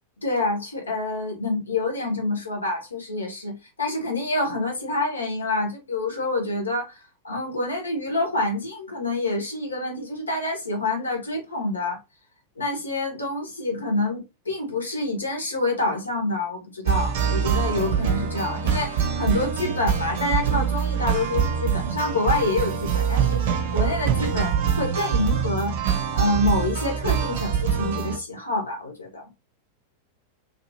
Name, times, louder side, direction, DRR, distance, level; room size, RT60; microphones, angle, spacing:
voice 1, 0.2-12.0 12.6-25.8 26.1-29.2, left 2 dB, 75° left, 1.0 m, -27 dB
sound 1, 16.8-28.2, right 7 dB, 55° right, 0.8 m, -24 dB
3.1 x 2.5 x 2.7 m
figure-of-eight pair, 90°, 0 cm